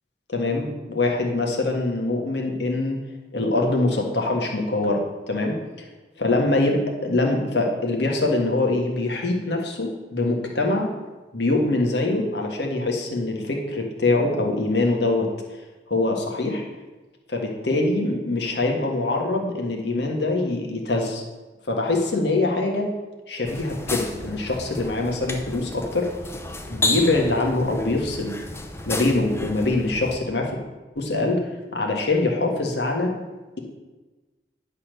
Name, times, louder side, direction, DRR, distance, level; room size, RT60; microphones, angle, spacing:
voice 1, 0.3-3.0 3.3-5.5 6.2-10.9 11.3-15.3 15.9-16.6 17.3-21.2 21.7-22.9 23.3-26.1 26.7-28.3 28.8-30.5 30.9-31.4 31.7-33.1, left 2 dB, 75° left, 0 dB, 1.6 m, -23 dB
sound 1, 23.5-30.2, left 2 dB, 15° left, 0.6 m, -31 dB
10.5 x 4.2 x 6.6 m, 1.2 s
head